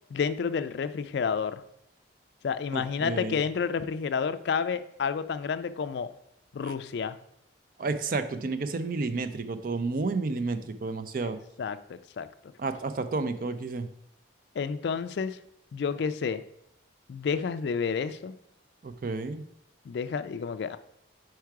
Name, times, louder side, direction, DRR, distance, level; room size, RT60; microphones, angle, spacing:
voice 1, 0.1-1.6 2.4-6.1 6.5-7.2 11.2-11.3 11.6-12.3 14.6-15.4 15.7-16.4 17.1-18.4 19.9-20.8, left 6 dB, 60° left, 11 dB, 0.3 m, -30 dB
voice 2, 2.7-3.4 6.6-6.7 7.8-11.4 12.6-13.9 18.8-19.4, right 3 dB, 45° right, 10 dB, 0.4 m, -31 dB
4.7 x 4.6 x 4.6 m, 0.74 s
head